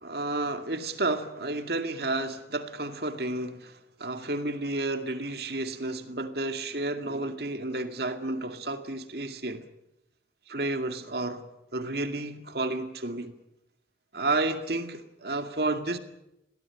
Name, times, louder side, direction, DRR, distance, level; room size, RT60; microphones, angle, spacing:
voice 1, 0.0-9.7 10.5-13.3 14.1-16.0, right 2 dB, 60° right, 2.2 m, -31 dB
23.0 x 17.0 x 9.9 m
head